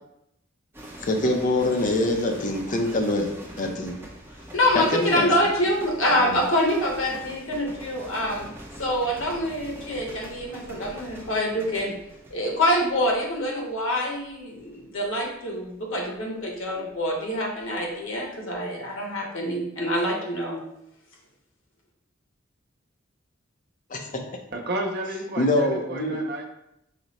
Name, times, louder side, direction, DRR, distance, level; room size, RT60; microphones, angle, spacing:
sound 1, 0.7-18.0 18.3-18.7, right 1 dB, 10° right, 0.7 m, -44 dB
voice 1, 1.0-3.3 3.6-4.0 4.7-5.4 6.2-6.4 23.9-24.1 25.4-26.2, left 1 dB, 40° left, 3 dB, 0.5 m, -24 dB
voice 2, 4.5-8.5 8.8-12.0 12.3-20.6, left 1 dB, 80° left, -1 dB, 1.1 m, -26 dB
voice 3, 24.5-26.5, right 1 dB, 55° right, 1 dB, 0.7 m, -31 dB
4.9 x 2.0 x 4.1 m, 0.81 s
head